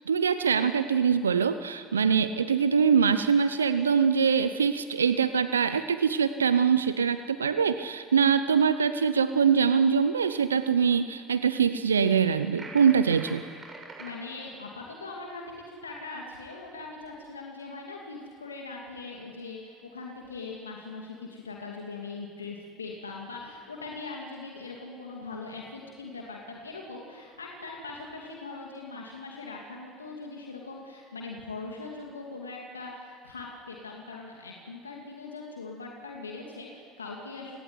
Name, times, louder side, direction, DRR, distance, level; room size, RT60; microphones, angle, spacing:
voice 1, 0.1-13.4, right 6 dB, 85° right, 11 dB, 0.7 m, -23 dB
sound 1, 12.5-14.1, right 3 dB, 30° right, 7.9 m, -43 dB
voice 2, 14.0-37.6, left 3 dB, 90° left, 0 dB, 2.5 m, -41 dB
29.5 x 19.0 x 9.8 m, 2.2 s
hypercardioid pair, 65°, 0 cm